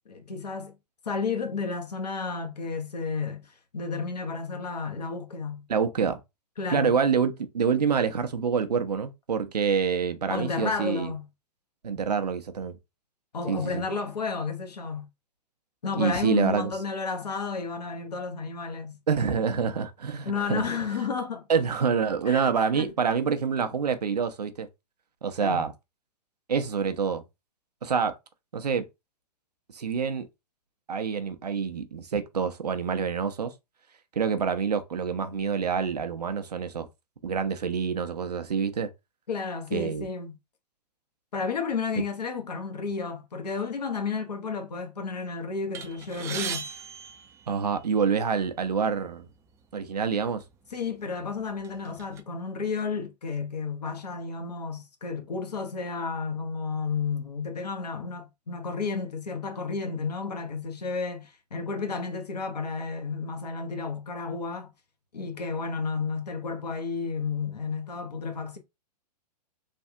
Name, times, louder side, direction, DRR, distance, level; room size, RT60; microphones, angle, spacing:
voice 1, 0.1-0.8 1.0-5.7 6.6-6.9 10.3-11.2 13.3-15.1 15.8-19.0 20.2-21.5 22.3-22.9 25.4-25.6 39.3-40.3 41.3-46.6 50.7-64.7 65.1-68.6, left 5 dB, 75° left, 0.9 m, -32 dB
voice 2, 5.7-6.2 6.7-11.1 11.8-12.8 13.5-13.8 15.9-16.7 19.1-20.6 21.5-24.7 25.2-25.7 26.5-27.2 27.8-28.1 28.5-28.9 29.7-30.3 30.9-33.5 34.2-36.9 37.2-38.9 39.7-40.1 47.5-49.3 49.7-50.4, right 6 dB, 75° right, 0.6 m, -27 dB
sound 1, 45.7-48.1 48.9-49.0 49.4-49.5 50.4-50.6 51.0-52.2, right 6 dB, 15° right, 0.3 m, -38 dB
3.4 x 2.3 x 2.7 m
figure-of-eight pair, 110°, 21 cm